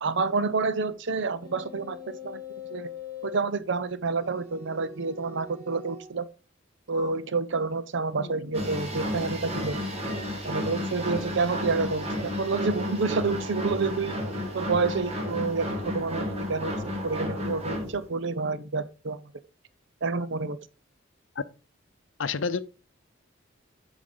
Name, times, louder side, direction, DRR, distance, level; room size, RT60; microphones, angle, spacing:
voice 1, 0.0-2.4 2.7-2.9 3.2-6.3 6.9-9.8 10.4-14.2 14.5-15.7 15.9-16.7 17.0-19.2 20.0-20.6, right 4 dB, 65° right, 0.7 m, -28 dB
sound 1, 1.4-3.5 4.2-6.2 6.9-7.1, left 6 dB, 15° left, 4.6 m, -42 dB
voice 2, 8.1-8.5 14.1-14.2 22.2-22.6, left 5 dB, 70° left, 0.6 m, -31 dB
sound 2, 8.5-18.1, equal, 35° right, 2.0 m, -32 dB
8.5 x 5.2 x 3.9 m
head